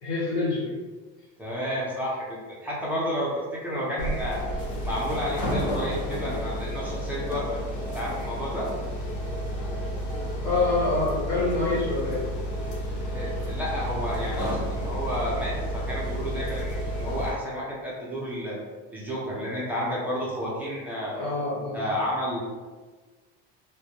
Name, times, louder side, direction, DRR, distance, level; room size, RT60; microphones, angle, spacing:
voice 1, 0.0-0.7 10.4-12.3 21.1-21.8, left 3 dB, 85° left, -6 dB, 1.2 m, -26 dB
voice 2, 1.4-4.4 4.8-7.6 7.9-8.7 13.1-18.6 18.9-21.2 21.7-22.4, equal, 5° right, -7 dB, 0.5 m, -31 dB
sound 1, 4.0-17.3, equal, 65° left, 0.8 m, -31 dB
2.2 x 2.1 x 2.8 m, 1.4 s
supercardioid pair, 115°, 32 cm